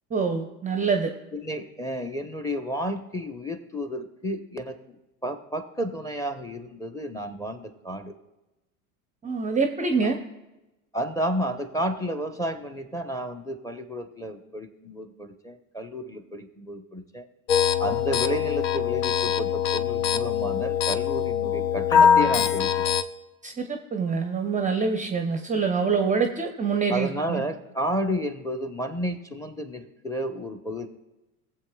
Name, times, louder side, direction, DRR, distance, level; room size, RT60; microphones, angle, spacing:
voice 1, 0.1-1.1 9.2-10.2 23.4-27.4, right 5 dB, 15° right, 5 dB, 0.7 m, -25 dB
voice 2, 1.3-5.0 5.2-8.1 10.9-17.2 17.8-22.9 26.9-30.9, equal, 5° left, 6 dB, 0.9 m, -31 dB
sound 1, 17.5-23.0, left 8 dB, 55° left, 0.7 m, -23 dB
19.5 x 7.6 x 2.3 m, 1.0 s
hypercardioid pair, 80°, 44 cm